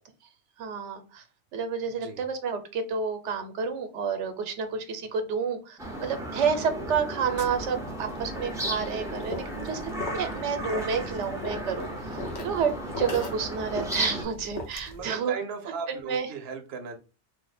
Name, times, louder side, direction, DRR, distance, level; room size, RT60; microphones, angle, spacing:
voice 1, 0.6-1.2 1.5-15.3 15.9-16.3, right 6 dB, 85° right, 8 dB, 1.0 m, -30 dB
voice 2, 1.9-2.2 14.9-17.0, right 5 dB, 65° right, 4 dB, 0.8 m, -36 dB
sound 1, 5.8-14.2, right 1 dB, 5° right, 0.6 m, -35 dB
sound 2, 7.4-15.1, left 1 dB, 50° left, 0.6 m, -40 dB
2.8 x 2.1 x 4.0 m, 0.32 s
omnidirectional pair, 1.2 m